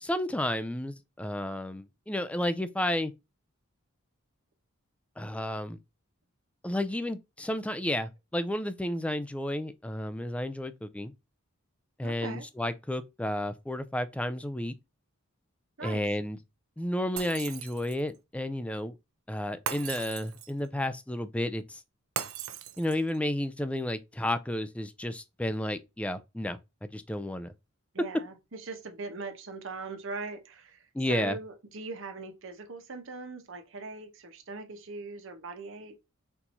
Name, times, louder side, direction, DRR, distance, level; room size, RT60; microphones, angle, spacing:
voice 1, 0.0-3.1 5.2-5.8 6.6-11.1 12.0-14.8 15.8-16.4 16.8-18.9 19.3-21.8 22.8-27.5 30.9-31.4, left 1 dB, 5° left, 0.3 m, -32 dB
voice 2, 12.0-12.5 15.8-16.0 27.9-36.0, right 3 dB, 60° right, 0.9 m, -40 dB
Shatter, 17.2-18.1 19.7-20.7 22.2-23.2, right 9 dB, 90° right, 0.6 m, -38 dB
4.5 x 2.6 x 4.2 m
head